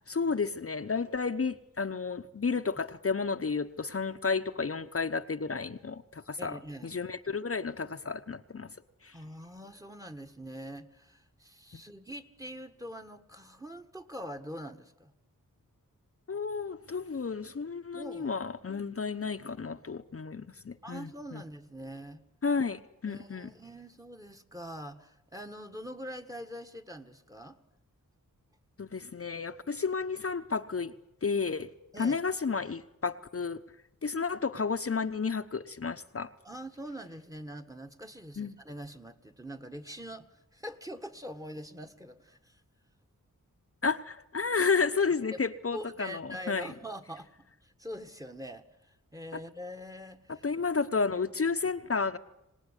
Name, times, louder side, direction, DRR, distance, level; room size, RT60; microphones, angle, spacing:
voice 1, 0.1-8.7 9.0-9.1 16.3-21.4 22.4-23.5 28.8-30.9 31.2-31.7 32.0-33.6 34.0-36.3 38.4-38.6 43.8-46.7 49.3-49.4 50.4-52.2, left 5 dB, 45° left, 7 dB, 1.0 m, -32 dB
voice 2, 6.4-6.9 9.1-15.1 17.9-18.3 20.8-22.2 23.0-27.6 31.9-32.2 36.4-42.6 45.3-45.4 45.7-47.3 47.6-50.4, equal, 10° right, 11 dB, 1.6 m, -44 dB
26.0 x 18.5 x 9.9 m, 0.88 s
wide cardioid pair, 75°, 32 cm